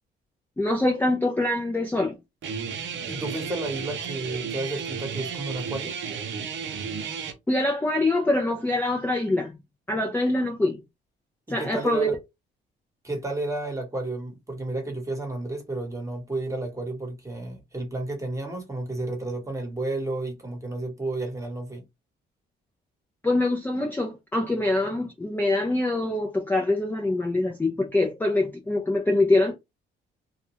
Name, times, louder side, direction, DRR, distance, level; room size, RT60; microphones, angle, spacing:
voice 1, 0.6-2.2 7.5-9.6 9.9-10.8 11.5-12.2 23.2-29.5, left 2 dB, 10° left, 0.5 m, -24 dB
Guitar, 2.4-7.3, right 6 dB, 70° right, 0.6 m, -33 dB
voice 2, 3.1-5.9 11.5-12.2 13.0-21.8, right 2 dB, 15° right, 1.1 m, -32 dB
2.4 x 2.1 x 2.9 m
cardioid pair, 90°, 20 cm